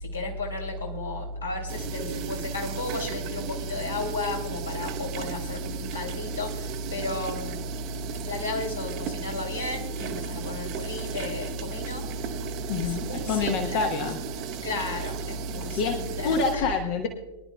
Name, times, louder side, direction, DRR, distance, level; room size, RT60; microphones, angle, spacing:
voice 1, 0.0-7.7 8.2-12.0 12.8-13.8 14.6-16.6, left 2 dB, 75° left, -1 dB, 2.9 m, -32 dB
sound 1, 1.7-16.6, right 8 dB, 40° right, 0.8 m, -36 dB
voice 2, 12.7-14.2 15.8-17.1, left 4 dB, 45° left, 4 dB, 1.1 m, -27 dB
23.5 x 11.5 x 2.3 m, 1.2 s
figure-of-eight pair, 90°, 0 cm